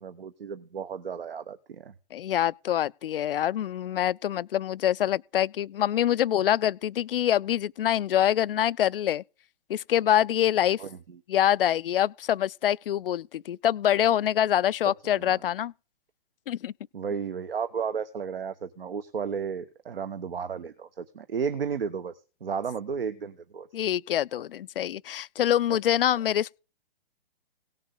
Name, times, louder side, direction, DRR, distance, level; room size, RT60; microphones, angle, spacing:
voice 1, 0.0-1.9 10.8-11.2 15.0-15.4 16.9-22.1 22.4-23.7 25.7-25.8, right 6 dB, 70° right, 1.2 m, -33 dB
voice 2, 2.1-9.2 9.7-10.8 11.3-15.7 16.5-16.7 23.7-26.6, left 11 dB, 65° left, 0.5 m, -25 dB
17.5 x 7.3 x 3.8 m
figure-of-eight pair, 125°, 30 cm